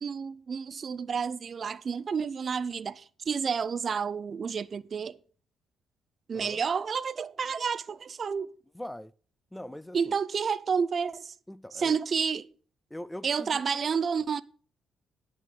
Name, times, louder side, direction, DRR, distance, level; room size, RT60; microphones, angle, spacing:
voice 1, 0.0-5.2 6.3-8.5 9.9-11.3 11.7-12.5 13.2-14.4, right 6 dB, 45° right, 0.5 m, -30 dB
voice 2, 8.7-9.1 9.5-10.1 11.5-12.0 12.9-13.6, left 1 dB, 5° left, 0.4 m, -41 dB
9.6 x 5.4 x 8.0 m
cardioid pair, 90°, 0 cm